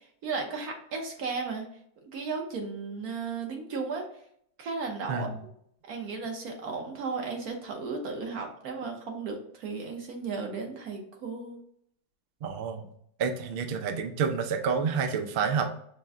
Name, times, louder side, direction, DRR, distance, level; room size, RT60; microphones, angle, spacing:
voice 1, 0.2-1.7 2.0-4.1 4.6-5.3 5.9-11.6, right 4 dB, 65° right, 2 dB, 1.3 m, -35 dB
voice 2, 5.1-5.4 12.4-12.9 13.2-15.7, right 6 dB, 90° right, 5 dB, 0.5 m, -29 dB
5.2 x 2.2 x 3.5 m, 0.68 s
omnidirectional pair, 1.7 m